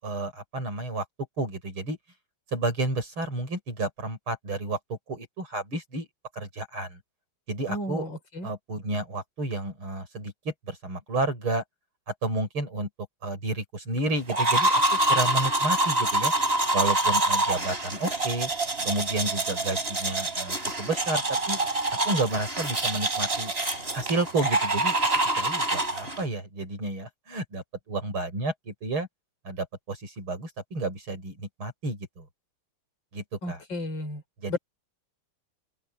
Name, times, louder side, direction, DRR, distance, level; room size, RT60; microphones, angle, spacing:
voice 1, 0.0-1.0 1.4-2.0 2.5-6.1 6.3-7.0 7.5-8.0 8.4-11.6 12.1-12.9 13.2-16.3 16.7-18.5 18.8-21.6 22.1-23.5 23.9-25.0 25.4-29.1 29.4-32.3 33.1-33.6 34.4-34.6, right 2 dB, 85° right, 7.8 m, -31 dB
voice 2, 7.7-8.5 33.4-34.2 34.5-34.6, left 1 dB, 65° left, 5.7 m, -33 dB
sound 1, 14.3-26.3, right 2 dB, 30° right, 5.8 m, -26 dB
open air
omnidirectional pair, 2.3 m